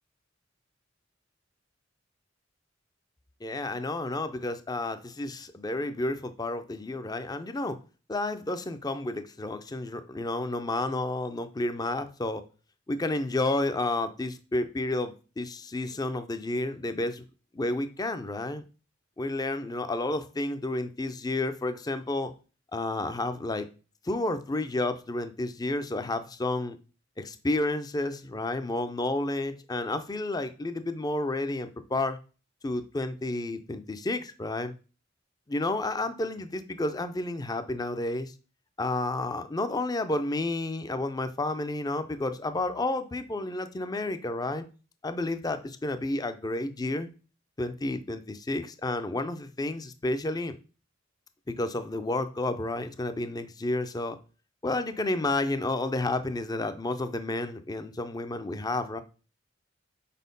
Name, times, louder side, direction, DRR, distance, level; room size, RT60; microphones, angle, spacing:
voice 1, 3.4-7.8 8.1-12.4 12.9-17.2 17.5-18.6 19.2-22.3 22.7-23.7 24.0-26.8 27.2-32.2 32.6-34.7 35.5-38.3 38.8-44.6 45.0-47.1 47.6-50.6 51.5-54.2 54.6-59.0, left 2 dB, 20° left, 0.5 m, -31 dB
4.5 x 4.2 x 5.3 m
head